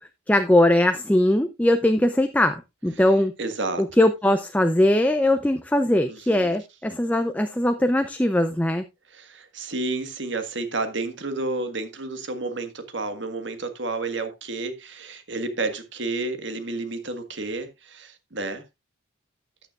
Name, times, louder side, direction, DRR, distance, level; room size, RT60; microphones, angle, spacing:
voice 1, 0.3-3.3 3.8-8.9, left 1 dB, 10° left, 0.5 m, -20 dB
voice 2, 3.4-3.8 6.1-6.5 9.1-18.6, right 3 dB, 65° right, 1.6 m, -31 dB
13.5 x 9.2 x 2.4 m
head